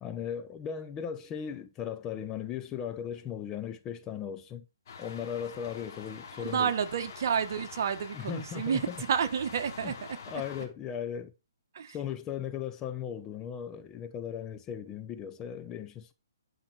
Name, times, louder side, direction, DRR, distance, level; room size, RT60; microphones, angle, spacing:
voice 1, 0.0-4.6 5.0-6.7 8.1-9.0 9.8-9.9 10.3-11.3 11.9-16.1, left 8 dB, 20° left, 0.7 m, -37 dB
sound 1, 4.9-10.7, left 6 dB, 50° left, 3.2 m, -46 dB
voice 2, 6.4-9.9 10.3-10.4 11.7-12.0, right 7 dB, 50° right, 1.5 m, -30 dB
10.5 x 5.9 x 4.3 m
hypercardioid pair, 155°, 2 cm